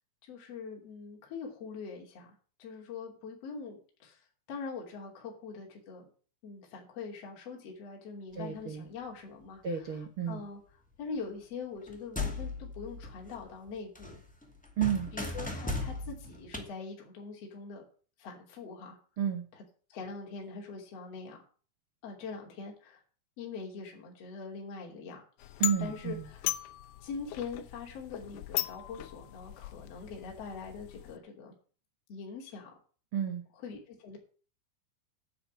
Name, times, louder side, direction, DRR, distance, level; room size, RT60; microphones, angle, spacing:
voice 1, 0.2-2.3 2.6-4.2 4.5-6.0 6.4-9.9 10.3-10.6 11.0-14.2 15.1-17.8 18.2-19.0 19.9-21.4 22.0-23.0 23.4-25.2 25.8-26.5 27.0-31.5 32.1-32.7 33.6-34.2, left 5 dB, 40° left, 0 dB, 3.6 m, -43 dB
voice 2, 8.3-8.9 9.6-10.4 14.8-15.1 19.2-19.5 25.6-26.3 33.1-33.4, right 8 dB, 85° right, 5 dB, 1.2 m, -31 dB
sound 1, 11.8-13.7 13.9-16.6, left 2 dB, 5° left, 0.7 m, -37 dB
sound 2, 25.4-31.2, left 15 dB, 75° left, 2.3 m, -38 dB
10.5 x 7.4 x 8.5 m, 0.40 s
omnidirectional pair, 4.9 m